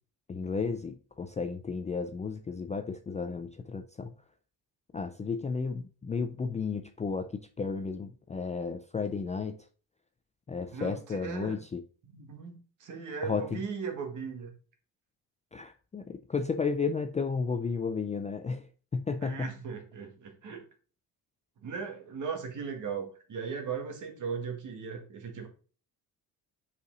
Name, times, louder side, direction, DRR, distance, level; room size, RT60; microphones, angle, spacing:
voice 1, 0.3-4.1 4.9-9.6 10.5-11.8 13.2-13.6 15.5-18.7 18.9-19.5, left 5 dB, 20° left, 0.3 m, -33 dB
voice 2, 10.7-11.6 12.0-14.5 19.2-20.6 21.6-25.5, right 6 dB, 50° right, 1.8 m, -38 dB
5.5 x 4.9 x 3.8 m
cardioid pair, 160°, 38 cm